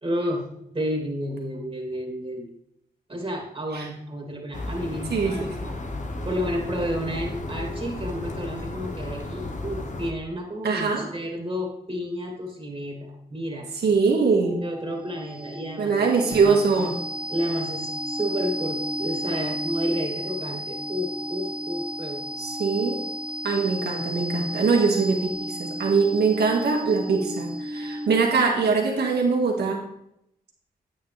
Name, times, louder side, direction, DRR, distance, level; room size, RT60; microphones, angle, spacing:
voice 1, 0.0-0.5 0.7-2.5 3.1-5.7 6.2-13.7 14.6-16.6 17.3-22.2, equal, 35° right, 0 dB, 2.7 m, -31 dB
sound 1, 4.5-10.1, left 2 dB, 50° left, 1.2 m, -33 dB
voice 2, 5.1-5.5 6.2-6.3 10.6-11.1 13.8-14.6 15.8-16.9 22.4-23.0 23.4-29.8, right 4 dB, 85° right, 1 dB, 2.0 m, -22 dB
sound 2, 14.5-28.4, equal, 5° right, 0.8 m, -33 dB
9.2 x 9.1 x 3.4 m, 0.77 s
cardioid pair, 55°, 17 cm